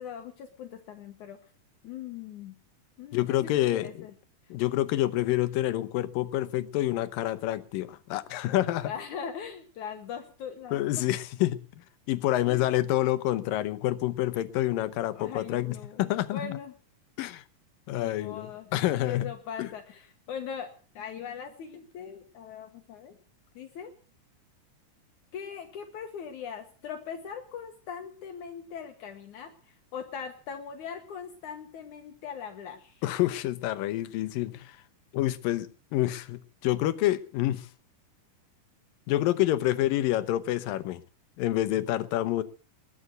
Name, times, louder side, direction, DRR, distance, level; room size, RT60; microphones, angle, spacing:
voice 1, 0.0-1.4 1.8-2.6 3.0-4.1 8.8-11.1 12.5-12.7 15.1-16.7 17.9-18.8 19.1-23.2 23.6-24.0 25.3-33.0, left 7 dB, 70° left, 6 dB, 2.6 m, -40 dB
voice 2, 3.1-3.9 4.5-8.9 10.7-11.6 12.1-16.6 17.2-17.4 17.9-19.3 19.6-19.7 33.0-34.8 35.1-37.7 39.1-41.0 41.4-42.4, left 14 dB, 85° left, 14 dB, 2.6 m, -28 dB
21.0 x 7.9 x 7.9 m, 0.43 s
omnidirectional pair, 3.9 m